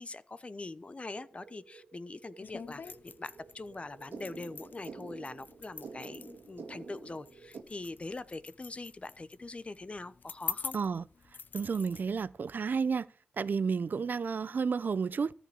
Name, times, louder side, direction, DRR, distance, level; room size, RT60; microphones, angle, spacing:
voice 1, 0.0-10.8, left 2 dB, 35° left, 0.9 m, -43 dB
sound 1, 1.1-7.6, right 5 dB, 85° right, 1.9 m, -50 dB
sound 2, 2.4-12.0, left 5 dB, 60° left, 0.6 m, -45 dB
voice 2, 10.7-11.0 11.5-13.1 13.4-15.3, right 5 dB, 60° right, 0.6 m, -31 dB
14.0 x 5.2 x 8.6 m
cardioid pair, 60°, 4 cm